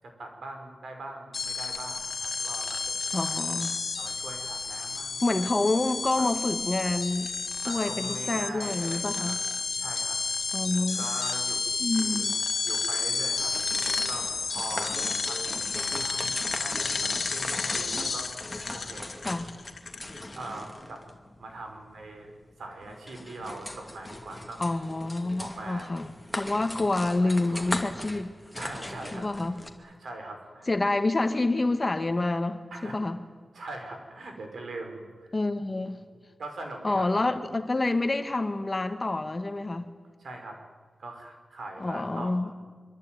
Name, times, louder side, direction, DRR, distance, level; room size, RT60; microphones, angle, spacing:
voice 1, 0.0-3.4 4.0-5.5 6.2-6.3 7.6-9.4 9.8-10.2 10.9-12.3 12.6-18.3 18.7-19.1 20.2-21.0 21.4-22.3 22.6-24.6 25.4-26.0 27.2-27.8 28.5-29.5 29.8-30.7 32.7-32.9 33.5-35.3 36.4-37.1 40.2-40.6 41.0-42.3, right 2 dB, 80° right, 4 dB, 5.9 m, -42 dB
sound 1, 1.3-20.5, left 4 dB, 55° left, 2.2 m, -31 dB
voice 2, 3.1-3.7 5.2-7.3 7.6-9.4 10.5-11.0 11.8-12.3 19.2-19.5 24.6-28.3 29.1-29.5 30.7-33.2 35.3-36.0 36.8-39.9 41.8-42.5, left 2 dB, 25° left, 8 dB, 1.8 m, -28 dB
sound 2, 13.2-29.7, left 1 dB, 5° left, 2.5 m, -40 dB
24.5 x 24.5 x 9.5 m, 1.5 s
wide cardioid pair, 135°, 0 cm